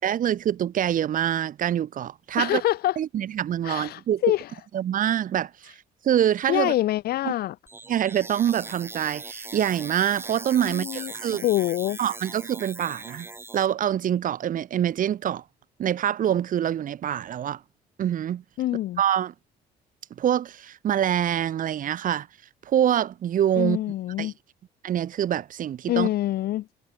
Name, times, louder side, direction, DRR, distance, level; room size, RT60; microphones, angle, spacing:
voice 1, 0.0-2.6 3.0-4.2 4.7-5.7 6.0-6.7 7.9-11.4 12.0-13.3 13.5-15.4 15.8-17.6 18.0-18.4 19.0-19.3 20.2-22.3 22.7-23.8 24.2-24.3 24.8-26.1, right 10 dB, 50° right, 2.0 m, -25 dB
voice 2, 2.4-3.0 3.6-4.5 6.5-7.6 10.6-12.0 18.6-19.0 23.6-24.3 25.9-26.7, left 14 dB, 65° left, 1.0 m, -25 dB
sound 1, 7.7-13.7, right 3 dB, 15° right, 1.6 m, -39 dB
cardioid pair, 110°, 17 cm